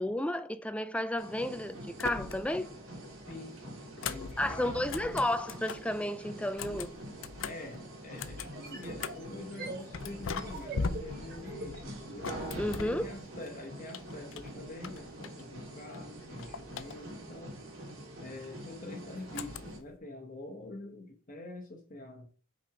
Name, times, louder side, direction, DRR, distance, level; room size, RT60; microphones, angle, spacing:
voice 1, 0.0-2.7 4.4-7.0 12.6-13.0, left 1 dB, 5° left, 0.4 m, -32 dB
sound 1, 1.2-19.8, right 1 dB, 80° right, 2.7 m, -45 dB
sound 2, 1.9-2.7 3.0-6.0 6.4-9.4 9.9-13.5 13.9-15.6 15.9-17.3 19.3-20.0, left 5 dB, 70° left, 0.5 m, -41 dB
voice 2, 3.1-5.2 7.4-12.4 12.8-17.6 18.2-22.3, left 2 dB, 40° left, 1.1 m, -46 dB
sound 3, 8.4-12.4, right 3 dB, 50° right, 2.2 m, -44 dB
5.9 x 4.3 x 4.8 m
head